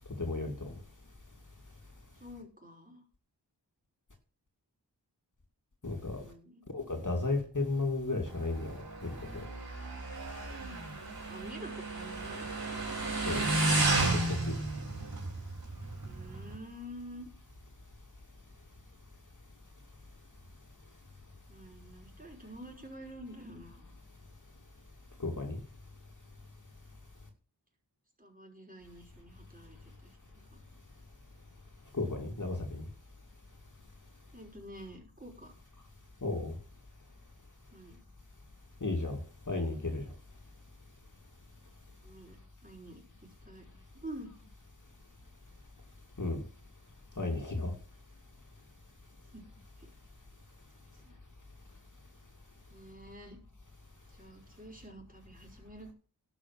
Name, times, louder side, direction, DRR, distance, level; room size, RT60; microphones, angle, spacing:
voice 1, 0.2-0.7 5.8-6.2 6.7-9.4 13.3-13.5 14.0-14.5 25.2-25.6 31.9-32.9 36.2-36.5 38.8-39.2 39.5-40.0 46.2-46.4 47.2-47.7, left 2 dB, 45° left, 3 dB, 2.5 m, -34 dB
voice 2, 2.2-3.0 6.1-6.6 11.3-12.5 16.0-17.3 21.5-24.0 28.2-30.6 34.3-35.5 37.7-38.0 42.0-43.7 44.0-44.3 49.3-49.4 49.8-49.9 50.9-51.2 52.7-53.4 54.1-55.9, equal, 20° right, 0 dB, 5.6 m, -48 dB
Motorcycle, 8.3-16.5, right 2 dB, 55° right, 4.3 m, -33 dB
11.5 x 6.1 x 7.6 m, 0.37 s
wide cardioid pair, 55°, 42 cm